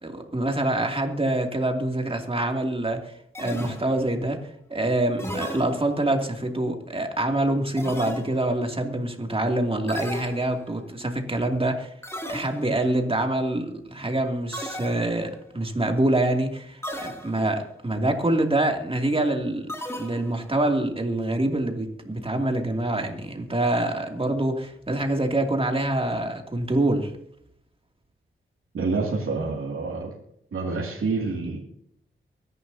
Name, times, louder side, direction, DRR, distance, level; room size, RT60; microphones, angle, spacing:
voice 1, 0.0-4.4 4.7-11.9 12.2-27.1, right 1 dB, 25° right, 3 dB, 2.7 m, -25 dB
sound 1, 3.3-4.2 5.2-6.2 7.8-8.6 9.9-10.9 12.0-12.9 14.5-15.5 16.8-17.6 19.7-20.6, equal, 10° left, 2.8 m, -36 dB
voice 2, 28.7-30.1 30.5-31.6, right 4 dB, 85° right, -3 dB, 2.7 m, -27 dB
24.0 x 11.0 x 2.8 m, 0.72 s
cardioid pair, 55°, 21 cm